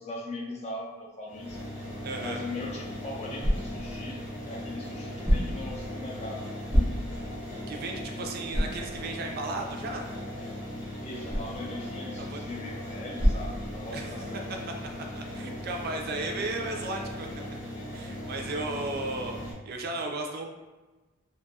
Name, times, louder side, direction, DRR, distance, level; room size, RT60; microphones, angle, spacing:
voice 1, 0.0-1.7 2.2-6.7 11.0-14.6, left 2 dB, 35° left, -1 dB, 0.4 m, -40 dB
sound 1, 1.3-19.5, left 1 dB, 85° left, 1.0 m, -38 dB
voice 2, 2.0-2.4 7.7-10.1 12.2-12.4 13.9-14.1 15.2-17.3 17.9-19.4 19.7-20.4, right 2 dB, 50° right, 2 dB, 0.4 m, -34 dB
sound 2, 2.6-14.3, equal, ahead, 0.6 m, -32 dB
2.6 x 2.2 x 2.6 m, 1.2 s
head